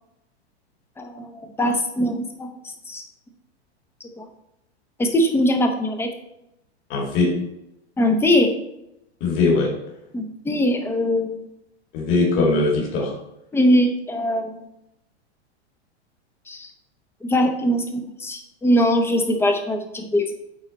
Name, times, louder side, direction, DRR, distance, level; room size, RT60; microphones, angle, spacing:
voice 1, 1.0-2.5 2.9-3.0 4.2-4.3 5.0-6.1 8.0-8.5 10.1-11.4 13.5-14.6 16.5-16.7 17.2-20.3, equal, 5° left, 5 dB, 0.8 m, -21 dB
voice 2, 6.9-7.3 9.2-9.7 11.9-13.1, left 3 dB, 35° left, -3 dB, 2.3 m, -20 dB
8.6 x 4.0 x 4.2 m, 0.85 s
hypercardioid pair, 130°, 34 cm